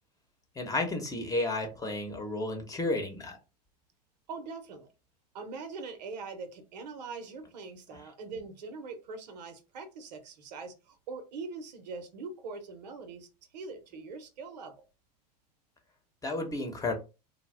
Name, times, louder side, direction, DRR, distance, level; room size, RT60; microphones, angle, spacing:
voice 1, 0.6-3.4 16.2-16.9, left 2 dB, 15° left, 0.9 m, -32 dB
voice 2, 4.3-4.9 5.3-13.3 13.5-14.8, right 4 dB, 80° right, 0.8 m, -42 dB
2.6 x 2.2 x 3.3 m
hypercardioid pair, 95°, 21 cm